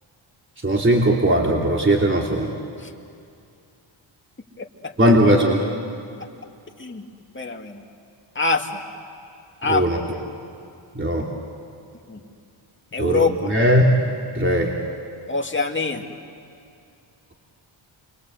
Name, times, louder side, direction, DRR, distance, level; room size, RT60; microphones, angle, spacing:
voice 1, 0.6-2.5 5.0-5.6 9.6-10.0 10.9-11.3 13.0-13.8 14.3-14.7, right 1 dB, 25° right, -1 dB, 3.2 m, -18 dB
voice 2, 4.6-4.9 6.8-7.1 7.3-7.8 8.4-8.8 9.6-10.0 12.1-12.2 12.9-13.5 15.3-16.0, left 4 dB, 25° left, 3 dB, 2.4 m, -25 dB
29.5 x 23.5 x 8.1 m, 2.5 s
cardioid pair, 80°, 47 cm